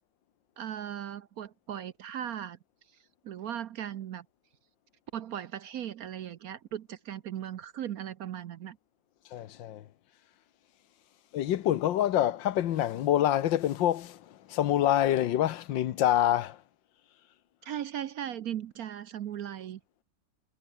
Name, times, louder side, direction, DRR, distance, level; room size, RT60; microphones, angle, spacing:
voice 1, 0.6-2.6 3.2-4.3 5.1-8.8 17.6-19.8, right 10 dB, 60° right, 1.0 m, -38 dB
voice 2, 9.3-9.9 11.3-16.6, left 12 dB, 80° left, 1.6 m, -26 dB
omnidirectional pair, 2.0 m